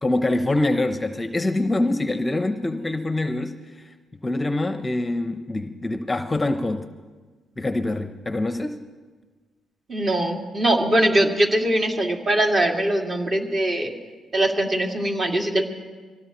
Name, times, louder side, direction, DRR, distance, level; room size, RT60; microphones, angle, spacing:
voice 1, 0.0-3.8 4.2-6.9 7.6-8.8, left 2 dB, 20° left, 8 dB, 0.8 m, -25 dB
voice 2, 9.9-13.9 14.3-15.6, right 1 dB, 35° right, 1 dB, 2.5 m, -21 dB
24.0 x 16.5 x 3.1 m, 1.4 s
cardioid pair, 90°, 0 cm